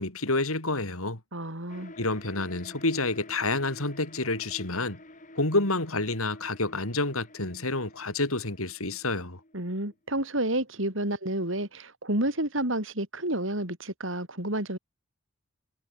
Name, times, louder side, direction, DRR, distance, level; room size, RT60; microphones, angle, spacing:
voice 1, 0.0-1.2 2.0-5.0 5.3-9.4, left 2 dB, 85° left, 5.0 m, -29 dB
voice 2, 1.3-1.9 9.5-14.8, right 1 dB, 60° right, 6.0 m, -30 dB
sound 1, 1.7-9.9, left 1 dB, 35° left, 5.9 m, -50 dB
head